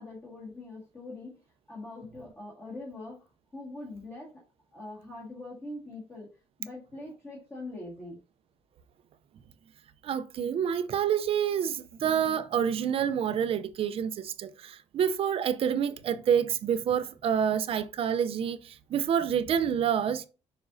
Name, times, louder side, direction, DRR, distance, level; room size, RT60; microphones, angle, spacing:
voice 1, 0.0-1.4 1.7-4.3 4.7-6.3 6.6-8.2, left 2 dB, 20° left, 1.9 m, -42 dB
voice 2, 10.0-20.3, right 8 dB, 50° right, 0.6 m, -28 dB
6.9 x 5.2 x 2.7 m
cardioid pair, 165°, 12 cm